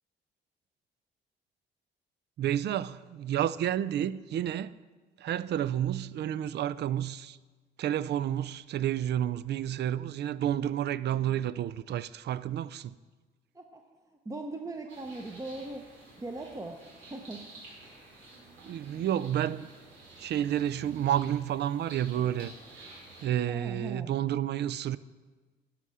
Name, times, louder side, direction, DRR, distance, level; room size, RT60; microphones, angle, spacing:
voice 1, 2.4-4.7 5.2-7.4 7.8-13.0 18.7-19.7 20.2-22.8 23.2-25.0, right 11 dB, 60° right, 0.4 m, -30 dB
voice 2, 14.2-15.8 16.2-16.8 17.1-17.4 23.5-24.1, right 2 dB, 15° right, 0.7 m, -39 dB
sound 1, 14.9-23.3, right 2 dB, 90° right, 3.1 m, -51 dB
12.0 x 5.6 x 4.8 m
cardioid pair, 90°, 20 cm